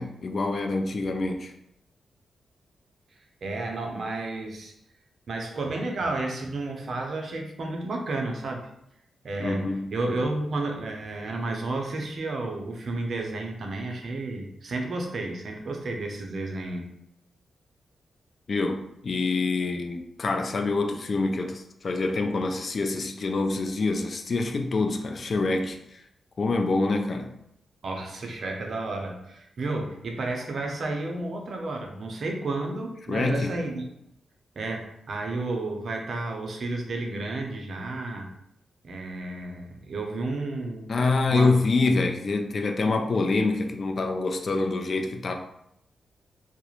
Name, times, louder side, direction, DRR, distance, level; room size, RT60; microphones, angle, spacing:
voice 1, 0.0-1.5 9.4-9.9 18.5-26.0 26.4-27.3 33.1-33.5 40.9-45.3, left 3 dB, 50° left, 5 dB, 0.3 m, -26 dB
voice 2, 3.4-4.7 5.3-8.7 9.2-16.9 27.8-33.9 34.6-38.3 38.8-40.9 41.3-41.5, right 2 dB, 65° right, 2 dB, 0.5 m, -32 dB
2.3 x 2.0 x 3.0 m, 0.77 s
cardioid pair, 75°, 0 cm